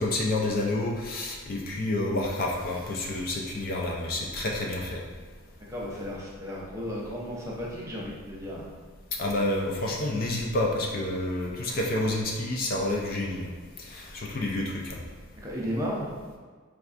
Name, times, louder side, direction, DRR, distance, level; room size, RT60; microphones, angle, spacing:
voice 1, 0.0-5.0 9.2-13.5 13.8-15.0, left 1 dB, 45° left, -1 dB, 0.4 m, -29 dB
voice 2, 5.7-8.7 15.4-16.1, equal, 15° right, -5 dB, 0.5 m, -34 dB
4.4 x 2.3 x 2.4 m, 1.5 s
head